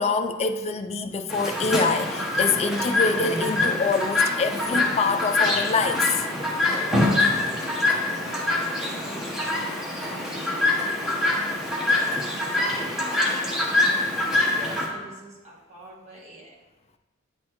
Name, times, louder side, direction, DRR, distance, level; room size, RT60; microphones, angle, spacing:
voice 1, 0.0-6.1, left 4 dB, 30° left, 7 dB, 0.4 m, -25 dB
Chirp tweet, 1.3-14.9, left 2 dB, ahead, 1.0 m, -25 dB
voice 2, 7.2-9.7 10.1-12.3 12.8-14.4 14.8-16.5, right 1 dB, 35° right, -5 dB, 1.3 m, -46 dB
9.3 x 4.2 x 3.0 m, 1.1 s
head